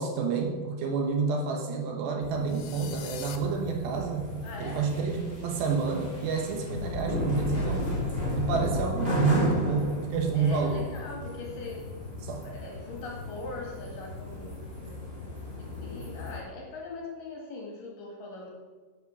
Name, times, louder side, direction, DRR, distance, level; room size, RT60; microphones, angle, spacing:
voice 1, 0.0-4.3 4.6-8.0 8.3-10.9 12.2-12.5, right 5 dB, 70° right, 3 dB, 3.1 m, -29 dB
sound 1, 2.2-16.4, left 1 dB, 15° right, 3.5 m, -34 dB
sound 2, 2.5-3.4, left 11 dB, 75° left, 2.7 m, -43 dB
voice 2, 4.4-4.9 10.3-11.9 12.4-15.2 15.6-18.5, left 3 dB, 55° left, 0 dB, 2.8 m, -41 dB
11.0 x 8.5 x 6.1 m, 1.4 s
omnidirectional pair, 5.5 m